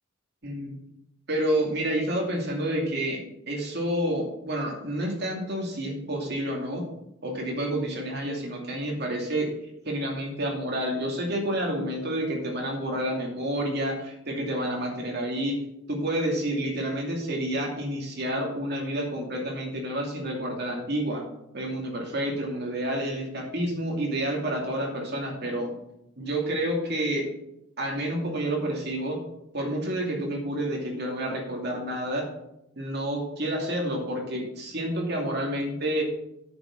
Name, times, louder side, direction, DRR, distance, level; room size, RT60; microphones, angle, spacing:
voice 1, 0.4-0.8 1.3-6.9 7.2-9.5 9.8-15.6 15.9-21.2 21.5-25.7 26.2-27.3 27.8-29.2 29.5-32.2 32.8-36.0, right 1 dB, 50° right, 0 dB, 2.5 m, -29 dB
8.7 x 7.3 x 5.7 m, 0.85 s
head